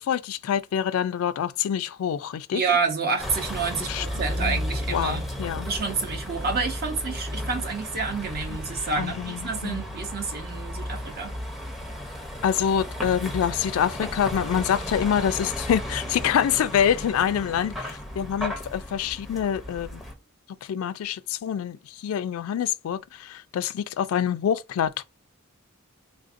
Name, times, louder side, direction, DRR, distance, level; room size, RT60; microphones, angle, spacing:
voice 1, 0.0-2.6 3.9-4.1 4.4-4.6 4.9-5.7 8.5-8.6 9.0-9.8 12.4-20.0 20.7-25.0, left 8 dB, 80° left, 0.3 m, -26 dB
voice 2, 2.5-5.3 5.7-11.3, right 4 dB, 50° right, 0.8 m, -29 dB
Vehicle, 3.2-20.1, left 1 dB, ahead, 0.6 m, -34 dB
3.5 x 2.5 x 2.5 m
head